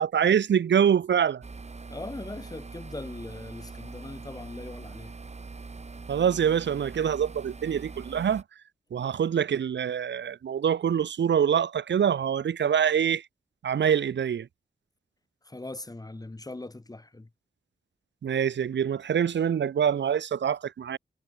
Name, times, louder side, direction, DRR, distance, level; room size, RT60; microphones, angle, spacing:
voice 1, 0.0-1.4 6.1-8.4 8.9-13.2 13.6-14.5 18.2-21.0, right 8 dB, 75° right, 0.9 m, -25 dB
sound 1, 1.4-8.4, right 4 dB, 35° right, 3.8 m, -43 dB
voice 2, 1.9-5.1 15.4-17.3, left 2 dB, 20° left, 4.5 m, -40 dB
wide cardioid pair, 120°, 19 cm